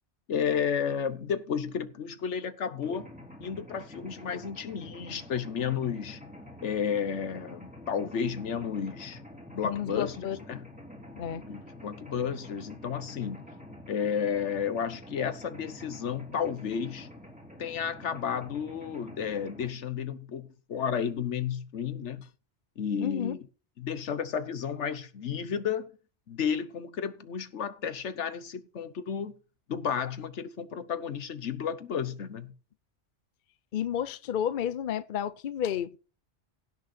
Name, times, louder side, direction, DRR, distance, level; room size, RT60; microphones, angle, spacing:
voice 1, 0.3-3.1 3.4-6.2 6.6-9.2 9.5-10.2 10.5-10.6 11.5-13.4 13.9-17.1 17.6-22.2 22.8-23.4 23.8-25.9 26.3-29.3 29.7-32.5, left 7 dB, 80° left, 1.3 m, -32 dB
Mechanisms, 2.8-19.7, left 1 dB, 5° right, 3.4 m, -47 dB
voice 2, 9.6-10.6 11.2-11.4 23.0-23.3 33.7-36.0, left 9 dB, 50° left, 0.7 m, -31 dB
16.5 x 6.5 x 4.3 m
omnidirectional pair, 1.2 m